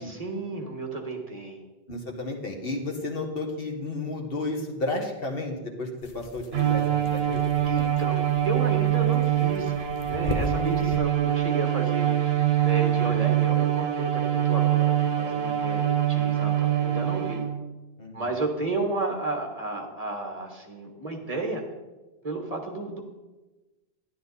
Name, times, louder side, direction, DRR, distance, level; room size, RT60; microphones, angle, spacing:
voice 1, 0.0-1.6 7.6-9.7 10.1-12.3 12.6-17.4 18.1-21.6 22.2-23.0, right 2 dB, 35° right, 2 dB, 1.7 m, -32 dB
voice 2, 1.9-5.9 6.1-6.8 7.1-7.4 18.0-18.2, left 2 dB, 65° left, 2 dB, 1.8 m, -32 dB
sound 1, 6.0-11.0, left 3 dB, 40° left, 0.8 m, -38 dB
Bowed string instrument, 6.5-17.7, right 11 dB, 75° right, 1.1 m, -24 dB
11.5 x 11.5 x 4.1 m, 1.1 s
omnidirectional pair, 1.0 m